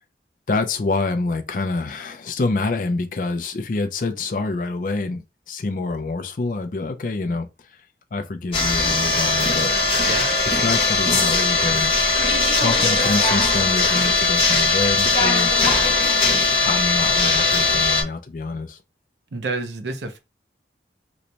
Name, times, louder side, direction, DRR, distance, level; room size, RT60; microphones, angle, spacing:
voice 1, 0.5-7.5 8.1-9.7 10.5-12.0 12.6-15.5 16.7-18.8, left 3 dB, 50° left, 0.4 m, -26 dB
sound 1, 8.5-18.0, left 3 dB, 30° left, 0.9 m, -19 dB
voice 2, 19.3-20.2, right 3 dB, 85° right, 0.6 m, -28 dB
3.0 x 2.2 x 3.9 m
head